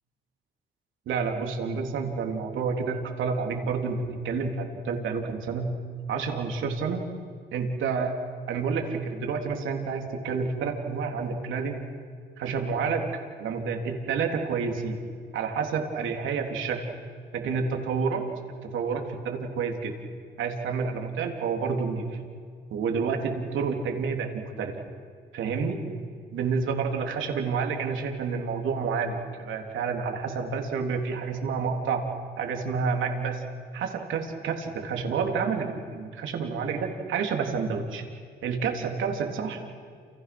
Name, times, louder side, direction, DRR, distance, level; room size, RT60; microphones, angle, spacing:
voice 1, 1.1-5.7 6.1-7.0 7.5-8.1 8.5-11.8 12.4-13.1 13.4-15.0 15.3-16.9 17.3-18.2 18.6-19.9 20.4-22.1 22.7-24.7 25.3-25.8 26.3-32.0 32.4-33.4 33.7-38.0 38.4-39.6, right 5 dB, 80° right, 2 dB, 3.7 m, -29 dB
29.0 x 29.0 x 6.2 m, 2.1 s
cardioid pair, 90°, 20 cm